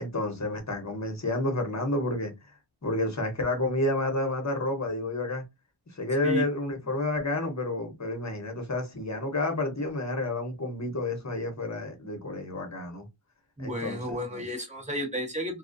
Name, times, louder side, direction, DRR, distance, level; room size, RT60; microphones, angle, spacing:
voice 1, 0.0-2.3 2.8-5.4 5.9-13.1 13.6-14.4, left 2 dB, 35° left, 1.0 m, -30 dB
voice 2, 13.6-15.6, right 1 dB, 15° right, 1.0 m, -32 dB
2.3 x 2.2 x 2.5 m
wide cardioid pair, 55°, 48 cm